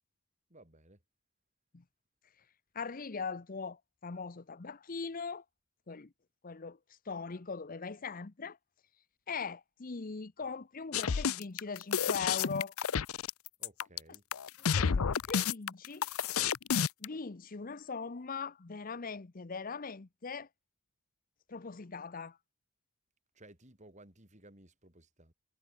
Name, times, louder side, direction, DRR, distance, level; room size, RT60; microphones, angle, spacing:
voice 1, 0.5-1.0 13.6-14.2 23.3-25.3, right 1 dB, 35° right, 5.8 m, -57 dB
voice 2, 2.7-5.4 5.9-6.1 6.4-6.8 7.1-8.6 9.3-12.7 14.7-16.1 17.0-20.5 21.5-22.4, left 5 dB, 40° left, 0.7 m, -40 dB
sound 1, 10.9-17.1, left 7 dB, 75° left, 0.6 m, -30 dB
head